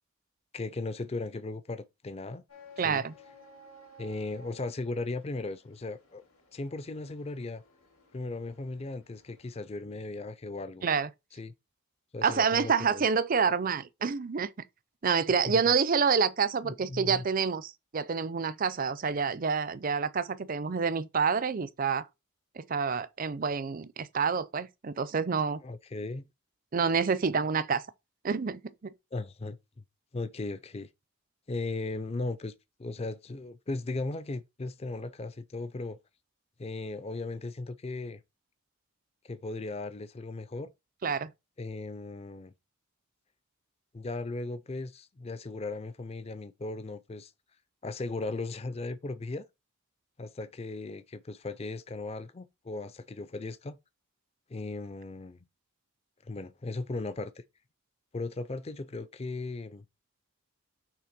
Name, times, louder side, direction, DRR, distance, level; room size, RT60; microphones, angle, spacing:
voice 1, 0.5-2.4 2.8-3.0 4.0-6.2 6.5-7.6 8.1-10.8 11.3-11.5 12.1-13.0 15.4-15.6 16.6-17.2 25.6-26.3 29.1-29.6 30.1-30.9 31.5-32.5 32.8-36.0 36.6-38.2 39.2-40.7 41.6-42.5 43.9-47.3 47.8-49.4 50.2-53.8 54.5-55.4 56.2-57.4 58.1-59.8, left 2 dB, 30° left, 0.4 m, -37 dB
sound 1, 2.5-9.8, left 2 dB, 85° left, 2.8 m, -56 dB
voice 2, 2.8-3.1 10.8-11.1 12.2-14.5 15.0-22.1 22.6-25.6 26.7-27.8 28.2-28.6 41.0-41.3, right 5 dB, 40° right, 0.5 m, -28 dB
6.0 x 3.3 x 5.9 m
head